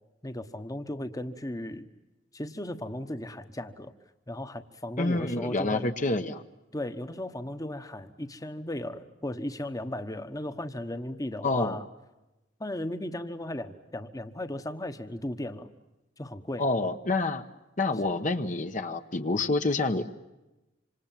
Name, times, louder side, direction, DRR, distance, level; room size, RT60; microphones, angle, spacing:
voice 1, 0.2-1.8 2.3-3.9 4.3-5.9 6.7-11.8 12.6-15.7 16.2-16.6, left 1 dB, 20° left, 9 dB, 1.2 m, -36 dB
voice 2, 5.0-6.4 11.4-11.8 16.6-17.4 17.8-20.1, left 2 dB, 45° left, 7 dB, 1.1 m, -28 dB
26.5 x 26.5 x 7.5 m, 1.0 s
head